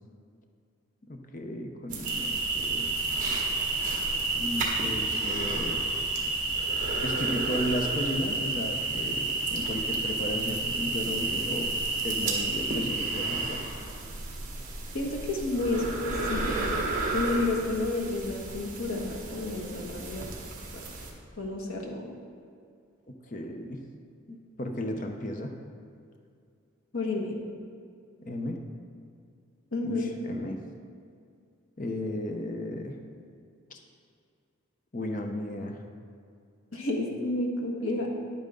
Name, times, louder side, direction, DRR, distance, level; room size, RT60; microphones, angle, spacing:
voice 1, 1.1-2.9 4.3-5.8 7.0-13.6 23.3-23.8 24.3-25.5 28.2-28.6 29.8-30.6 31.8-33.0 33.7-33.8 34.9-35.8, left 1 dB, 40° left, 3 dB, 0.7 m, -34 dB
sound 1, 1.9-21.1, right 2 dB, 40° right, 1.5 m, -36 dB
sound 2, 2.0-13.5, right 3 dB, 20° right, 1.6 m, -30 dB
voice 2, 14.9-20.3 21.4-22.1 26.9-27.4 29.7-30.1 36.7-38.1, left 2 dB, 80° left, 0 dB, 1.5 m, -31 dB
10.5 x 9.1 x 3.8 m, 2.3 s
head